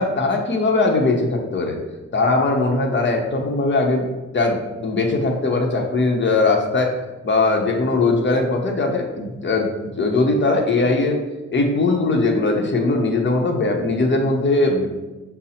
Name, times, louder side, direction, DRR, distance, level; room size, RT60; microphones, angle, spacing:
voice 1, 0.0-1.8 2.1-6.9 7.2-11.2 11.5-14.9, left 3 dB, 40° left, 2 dB, 0.8 m, -20 dB
5.2 x 2.1 x 4.2 m, 1.1 s
cardioid pair, 85°, 29 cm